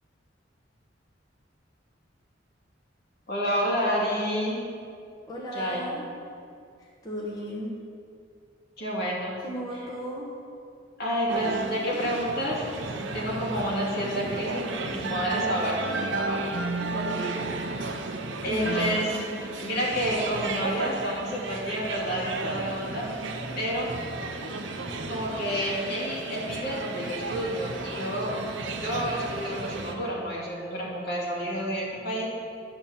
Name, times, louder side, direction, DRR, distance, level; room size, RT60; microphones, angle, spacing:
voice 1, 3.3-4.7 5.5-5.9 8.8-9.4 9.7-9.9 11.0-16.5 18.4-19.1 19.6-23.1 23.6-24.0 25.1-28.4 28.8-32.3, equal, 60° left, -4 dB, 2.2 m, -29 dB
voice 2, 5.3-6.1 7.0-7.7 9.4-10.3 16.9-17.5 18.5-19.2, equal, 20° left, -5 dB, 1.2 m, -35 dB
sound 1, 11.3-29.9, right 3 dB, 75° right, 0.8 m, -33 dB
11.0 x 4.4 x 7.0 m, 2.4 s
head